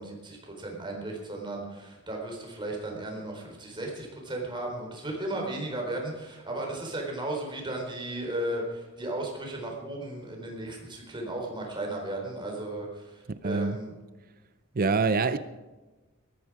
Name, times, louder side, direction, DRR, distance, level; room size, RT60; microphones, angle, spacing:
voice 1, 0.0-13.9, right 1 dB, 25° right, 4.1 m, -35 dB
voice 2, 13.4-13.8 14.7-15.4, right 4 dB, 45° right, 0.5 m, -25 dB
18.5 x 13.5 x 4.8 m
head